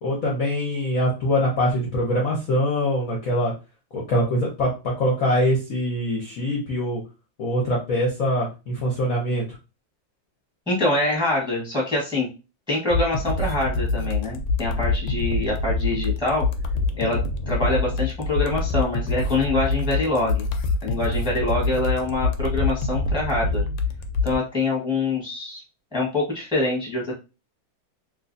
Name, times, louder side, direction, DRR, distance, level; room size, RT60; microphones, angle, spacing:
voice 1, 0.0-3.5 3.9-7.0 7.4-9.4, equal, 60° left, -2 dB, 0.9 m, -23 dB
voice 2, 10.7-12.3 12.7-16.5 17.0-17.2 17.5-20.5 20.8-23.6 24.2-25.6 25.9-27.1, left 2 dB, 5° right, -3 dB, 1.0 m, -25 dB
sound 1, 12.9-24.4, left 3 dB, 80° left, 1.3 m, -25 dB
3.1 x 3.0 x 2.6 m, 0.29 s
omnidirectional pair, 2.2 m